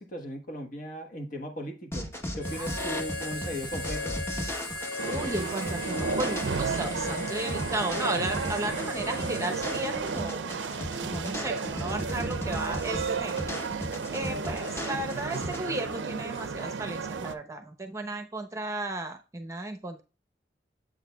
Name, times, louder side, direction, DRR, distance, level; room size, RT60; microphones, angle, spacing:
voice 1, 0.0-4.2, equal, 50° left, 1.4 m, -38 dB
sound 1, 1.9-15.6, equal, 15° left, 1.0 m, -37 dB
Harmonica, 2.4-10.4, left 3 dB, 85° left, 3.5 m, -38 dB
sound 2, 5.0-17.3, right 5 dB, 80° right, 0.5 m, -33 dB
voice 2, 5.1-10.6 11.0-13.5 13.8-13.9 14.1-20.0, right 2 dB, 15° right, 0.8 m, -34 dB
7.8 x 6.5 x 2.3 m
head